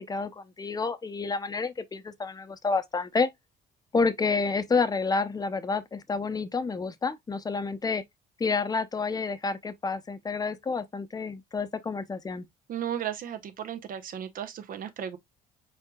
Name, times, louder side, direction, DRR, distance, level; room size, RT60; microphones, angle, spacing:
voice 1, 0.0-3.3 3.9-8.0 8.4-12.4, left 4 dB, 20° left, 0.7 m, -29 dB
voice 2, 12.7-15.2, right 9 dB, 55° right, 0.9 m, -35 dB
4.7 x 4.6 x 2.3 m
cardioid pair, 110°, 17 cm